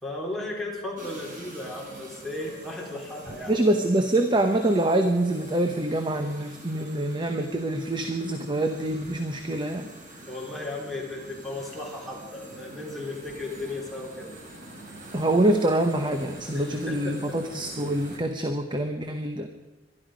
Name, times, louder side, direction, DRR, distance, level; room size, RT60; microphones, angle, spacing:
voice 1, 0.0-3.6 10.3-14.3 16.5-17.2, left 2 dB, ahead, -4 dB, 4.0 m, -35 dB
sound 1, 1.0-18.2, right 1 dB, 50° right, 4.0 m, -45 dB
voice 2, 3.5-9.9 15.1-19.5, right 1 dB, 25° right, 6 dB, 0.9 m, -25 dB
22.5 x 12.0 x 5.1 m, 1.1 s
head